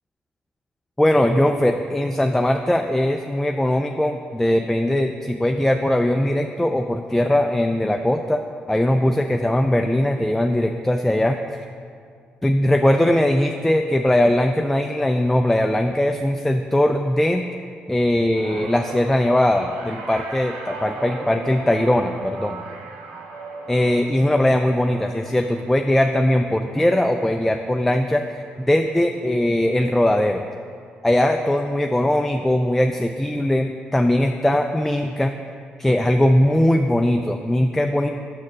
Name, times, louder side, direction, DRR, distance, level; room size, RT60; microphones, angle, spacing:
voice 1, 1.0-8.4 8.7-11.7 12.4-17.5 17.9-22.6 23.7-30.4 31.0-35.3 35.8-38.1, left 1 dB, 5° left, 5 dB, 0.4 m, -20 dB
sound 1, 18.4-28.8 29.1-29.5 30.7-30.8, right 3 dB, 85° right, 0.7 m, -38 dB
5.9 x 4.3 x 6.3 m, 2.2 s
hypercardioid pair, 50°, 4 cm